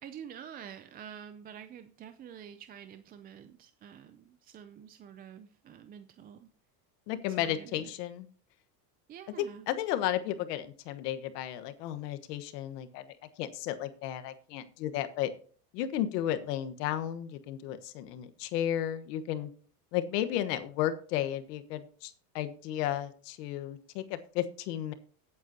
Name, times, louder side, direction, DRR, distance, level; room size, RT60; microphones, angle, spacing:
voice 1, 0.0-6.5 7.4-7.9 9.1-9.7, right 8 dB, 20° right, 10 dB, 0.4 m, -48 dB
voice 2, 7.1-8.3 9.7-15.3 15.7-19.5 19.9-24.9, left 11 dB, 75° left, 10 dB, 1.3 m, -33 dB
18.0 x 8.4 x 2.8 m, 0.44 s
supercardioid pair, 135°, 48 cm